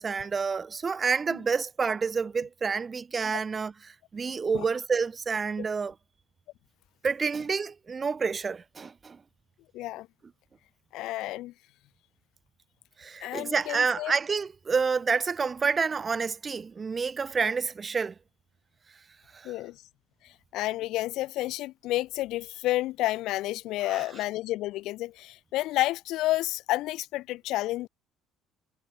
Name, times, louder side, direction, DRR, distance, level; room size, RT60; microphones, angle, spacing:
voice 1, 0.0-5.9 7.0-9.2 13.0-18.1 19.3-19.5 23.9-24.1, right 5 dB, 30° right, 4.0 m, -29 dB
voice 2, 9.7-10.1 10.9-11.5 13.2-14.1 19.4-19.8 20.5-27.9, left 17 dB, 70° left, 1.7 m, -30 dB
supercardioid pair, 85°, 0 cm